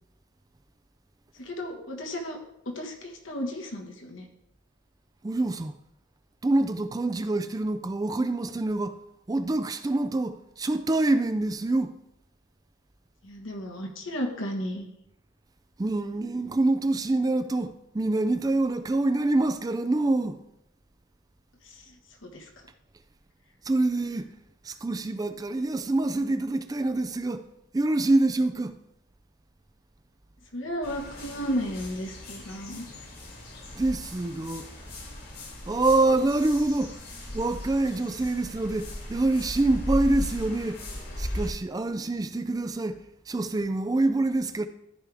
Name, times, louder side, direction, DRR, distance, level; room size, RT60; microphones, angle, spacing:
voice 1, 1.4-2.4 2.6-4.2 13.2-14.9 21.6-22.0 22.2-22.4 30.5-32.8, equal, 80° left, 1.5 m, -34 dB
voice 2, 5.2-5.7 6.4-9.0 9.3-11.9 15.8-20.4 23.7-24.3 24.6-27.4 27.7-28.8 33.7-34.7 35.7-36.9 37.3-40.9 41.2-43.0 43.3-44.7, right 2 dB, 20° right, 0.3 m, -26 dB
sound 1, 30.8-41.5, left 1 dB, 50° left, 1.8 m, -37 dB
13.5 x 4.9 x 3.4 m
head